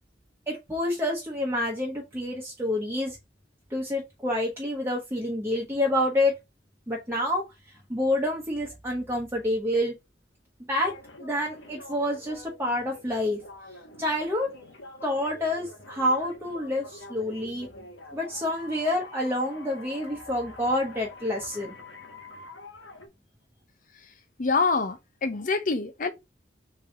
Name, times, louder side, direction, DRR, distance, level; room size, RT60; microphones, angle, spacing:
voice 1, 0.5-3.2 3.7-6.3 6.9-7.4 7.9-9.9 10.7-10.9 11.2-13.4 14.0-14.5 15.0-17.7 18.1-21.7, left 1 dB, 15° right, 1.0 m, -28 dB
sound 1, 10.7-23.1, left 2 dB, 70° left, 1.2 m, -46 dB
voice 2, 24.4-26.1, left 4 dB, 45° left, 0.7 m, -26 dB
3.8 x 3.4 x 4.1 m
head